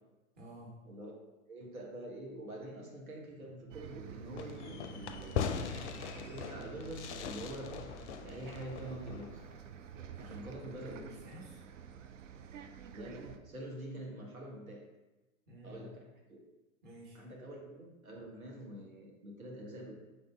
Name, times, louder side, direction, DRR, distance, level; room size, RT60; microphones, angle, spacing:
voice 1, 0.3-0.8 10.1-11.6 15.5-15.9 16.8-17.2, equal, 25° right, -4 dB, 1.3 m, -52 dB
voice 2, 1.5-5.5 6.1-9.4 10.2-11.1 12.9-14.8 15.6-16.4 17.1-19.9, right 1 dB, 80° right, -2 dB, 1.2 m, -46 dB
Bus, 3.7-13.4, right 7 dB, 65° right, 0.5 m, -49 dB
Fireworks, 4.4-9.6, left 7 dB, 55° left, 0.5 m, -41 dB
5.9 x 2.6 x 3.4 m, 1.1 s
figure-of-eight pair, 100°, 42 cm